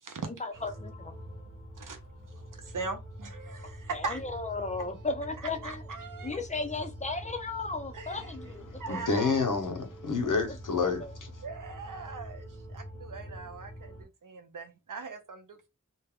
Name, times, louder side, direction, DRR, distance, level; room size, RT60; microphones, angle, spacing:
voice 1, 0.4-1.2 3.9-5.8 6.2-9.0 10.8-11.1, left 3 dB, 25° left, 0.4 m, -35 dB
sound 1, 0.5-14.0, equal, 45° right, 1.1 m, -45 dB
voice 2, 2.3-4.2 5.6-6.4 7.9-8.3 8.8-9.4 11.4-15.7, right 4 dB, 75° right, 0.6 m, -40 dB
voice 3, 8.9-11.0, left 4 dB, 70° left, 0.7 m, -28 dB
2.2 x 2.0 x 3.4 m
wide cardioid pair, 50°, 32 cm